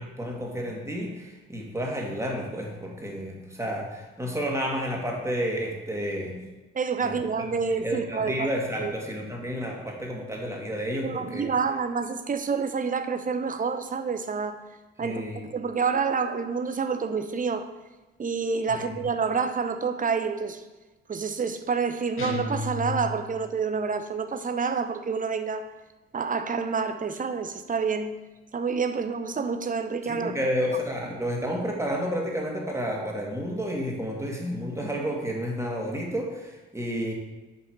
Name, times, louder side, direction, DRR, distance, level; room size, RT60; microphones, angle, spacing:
voice 1, 0.0-6.4 7.0-7.2 7.8-11.5 15.0-15.4 18.8-18.9 30.0-37.1, equal, 10° right, -1 dB, 2.3 m, -31 dB
voice 2, 6.7-8.5 8.8-8.9 11.0-14.6 15.0-15.2 15.5-17.7 18.2-20.6 21.1-25.6 26.1-28.2 28.5-30.3, right 5 dB, 25° right, 8 dB, 0.8 m, -28 dB
sound 1, 22.2-23.5, left 3 dB, 45° left, 1.4 m, -33 dB
7.4 x 5.5 x 4.6 m, 1.1 s
figure-of-eight pair, 45°, 30 cm